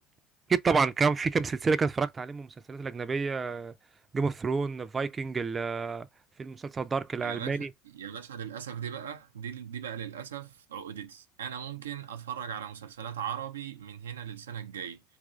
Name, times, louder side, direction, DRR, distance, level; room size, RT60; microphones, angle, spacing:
voice 1, 0.5-3.7 4.1-6.1 6.4-7.7, right 4 dB, 30° right, 0.4 m, -29 dB
voice 2, 7.2-15.0, right 8 dB, 85° right, 0.4 m, -39 dB
3.0 x 2.5 x 3.6 m
hypercardioid pair, 70°, 0 cm